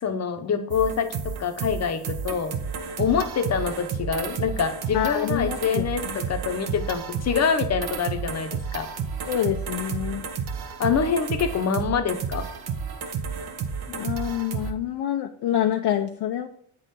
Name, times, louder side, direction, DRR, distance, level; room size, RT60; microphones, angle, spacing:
voice 1, 0.0-2.5 3.0-8.9 10.8-12.5, left 6 dB, 35° left, 7 dB, 0.9 m, -25 dB
sound 1, 0.7-14.7, right 6 dB, 55° right, 1.0 m, -31 dB
voice 2, 4.9-6.2 9.3-10.2 13.9-16.5, left 11 dB, 60° left, 4 dB, 0.6 m, -27 dB
7.9 x 3.8 x 4.2 m, 0.63 s
cardioid pair, 90°, 46 cm